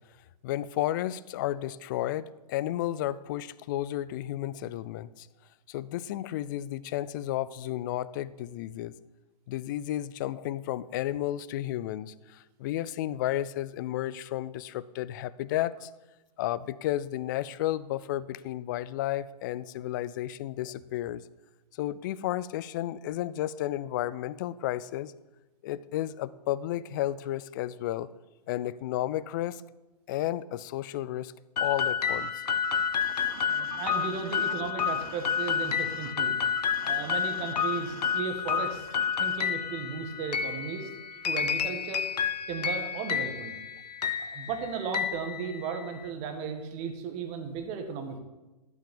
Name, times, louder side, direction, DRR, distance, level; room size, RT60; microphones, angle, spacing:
voice 1, 0.4-5.3 5.7-9.0 9.5-15.9 16.4-21.2 21.7-25.1 25.6-28.1 28.5-29.6 30.1-31.3 31.6-32.4, left 13 dB, 30° left, 18 dB, 0.4 m, -32 dB
sound 1, 31.6-46.0, left 7 dB, 75° left, 0.8 m, -30 dB
sound 2, 32.1-39.5, right 10 dB, 55° right, 0.7 m, -44 dB
voice 2, 33.5-36.4 36.8-38.9 39.2-40.9 41.2-42.0 42.5-43.5 44.2-48.2, right 6 dB, 30° right, 6 dB, 1.6 m, -35 dB
12.0 x 5.7 x 6.9 m, 1.1 s
hypercardioid pair, 135°, 21 cm